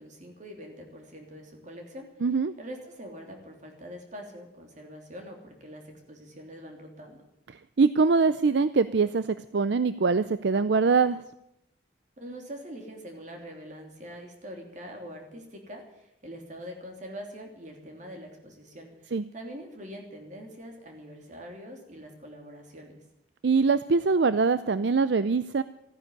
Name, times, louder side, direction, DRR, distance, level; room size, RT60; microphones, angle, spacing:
voice 1, 0.0-2.1 2.6-7.2 12.2-22.9, equal, 40° right, 2 dB, 3.2 m, -44 dB
voice 2, 2.2-2.5 7.8-9.3 9.5-11.2 19.1-19.2 23.4-25.6, right 4 dB, 65° right, 14 dB, 0.5 m, -23 dB
14.5 x 9.9 x 9.6 m, 0.85 s
head